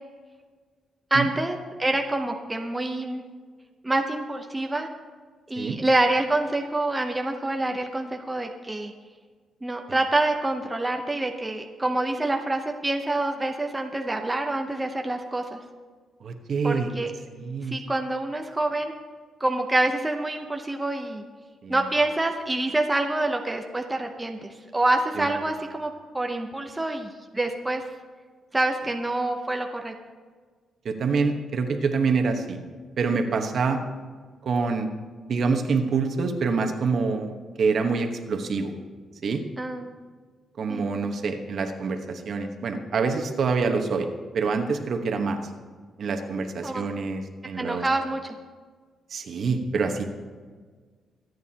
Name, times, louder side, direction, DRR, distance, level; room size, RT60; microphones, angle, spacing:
voice 1, 1.1-3.2 3.8-4.9 5.5-8.9 9.6-15.6 16.6-17.1 17.7-18.9 19.4-21.2 21.7-27.8 28.5-29.9 39.6-39.9 40.7-40.9 46.6-46.8 47.6-48.3, right 2 dB, 10° right, 3 dB, 0.8 m, -26 dB
voice 2, 16.2-16.9 17.3-17.8 21.6-21.8 25.2-25.3 30.8-32.6 33.0-33.8 34.4-34.9 35.3-38.7 39.2-39.4 40.6-44.1 44.3-45.4 46.0-47.8 49.1-50.1, right 4 dB, 55° right, 4 dB, 1.2 m, -26 dB
25.0 x 9.4 x 2.9 m, 1.5 s
cardioid pair, 140°, 0 cm